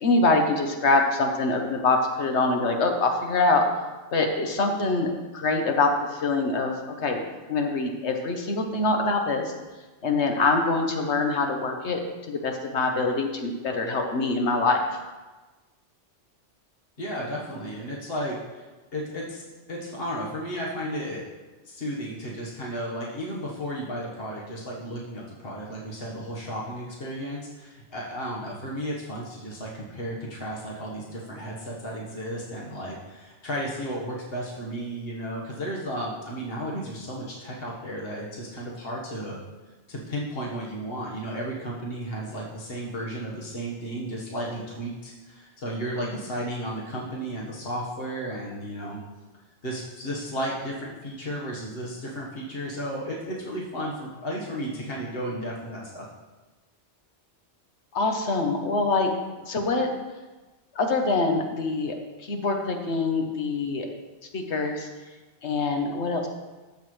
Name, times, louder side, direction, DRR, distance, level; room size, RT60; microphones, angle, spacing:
voice 1, 0.0-3.7 4.1-6.7 7.0-7.2 7.5-9.5 10.0-12.0 12.3-14.9 57.9-59.1 59.4-59.9 60.7-63.9 64.3-64.9 65.4-66.3, left 3 dB, 85° left, 4 dB, 1.3 m, -24 dB
voice 2, 17.0-18.7 18.9-19.4 19.7-21.2 21.6-39.4 39.9-49.0 49.6-56.1, equal, 60° left, -4 dB, 1.8 m, -33 dB
14.0 x 6.5 x 3.3 m, 1.2 s
omnidirectional pair, 1.1 m